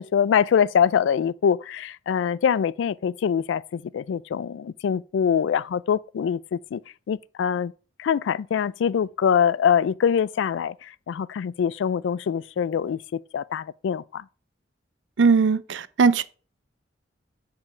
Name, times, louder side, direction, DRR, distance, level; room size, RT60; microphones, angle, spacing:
voice 1, 0.0-6.8 7.1-7.7 8.0-14.2, left 7 dB, 80° left, 0.3 m, -24 dB
voice 2, 15.2-16.2, right 4 dB, 80° right, 0.5 m, -19 dB
5.9 x 4.4 x 4.9 m
head